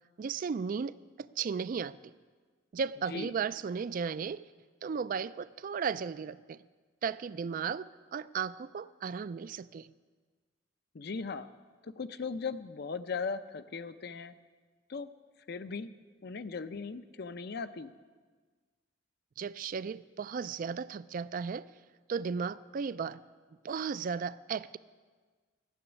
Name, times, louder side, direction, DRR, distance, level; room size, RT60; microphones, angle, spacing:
voice 1, 0.2-2.1 2.7-4.4 4.8-6.6 7.0-9.9 19.4-21.7 22.1-23.2 23.6-24.8, right 6 dB, 45° right, 17 dB, 0.3 m, -35 dB
voice 2, 10.9-11.5 11.8-14.3 14.9-15.1 15.5-15.9 16.2-17.9, left 5 dB, 55° left, 12 dB, 0.6 m, -38 dB
14.0 x 7.1 x 9.9 m, 1.5 s
head